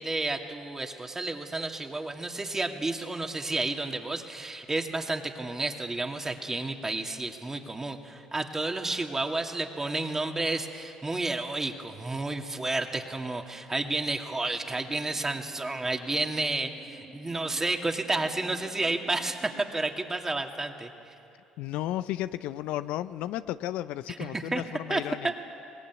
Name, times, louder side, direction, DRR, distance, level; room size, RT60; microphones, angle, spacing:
voice 1, 0.0-21.1 24.3-24.6 24.9-25.3, right 2 dB, 20° right, 4 dB, 2.4 m, -31 dB
sound 1, 14.6-19.6, right 4 dB, 50° right, 2.2 m, -52 dB
voice 2, 21.6-25.4, left 13 dB, 75° left, 14 dB, 0.5 m, -33 dB
22.5 x 19.5 x 9.6 m, 2.7 s
hypercardioid pair, 60°, 2 cm